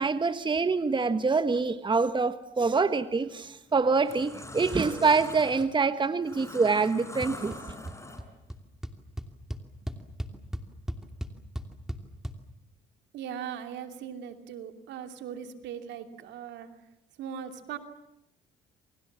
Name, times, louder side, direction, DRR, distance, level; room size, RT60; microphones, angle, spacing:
voice 1, 0.0-7.6, right 4 dB, 25° right, 1.3 m, -25 dB
sound 1, 3.1-3.4 3.8-8.5, left 2 dB, 15° left, 5.9 m, -43 dB
sound 2, 7.2-7.6 7.9-8.3 8.5-8.6 8.8-12.3, equal, ahead, 2.8 m, -36 dB
voice 2, 9.9-10.4 13.1-16.7 17.2-17.8, right 8 dB, 75° right, 2.9 m, -40 dB
29.0 x 24.0 x 7.4 m
supercardioid pair, 70°, 19 cm